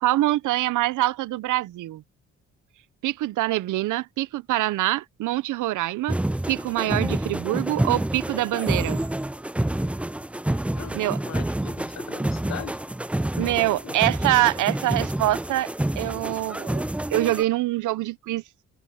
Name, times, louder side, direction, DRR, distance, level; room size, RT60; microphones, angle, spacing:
voice 1, 0.0-2.0 3.0-6.2 6.5-9.0 10.9-11.2 13.3-15.7 16.0-16.8 17.1-18.4, right 16 dB, 80° right, 0.8 m, -24 dB
sound 1, 6.1-17.4, right 1 dB, 5° right, 0.4 m, -28 dB
voice 2, 11.2-12.8 13.8-13.9 14.3-14.6, left 10 dB, 60° left, 1.2 m, -39 dB
cardioid pair, 90°, 30 cm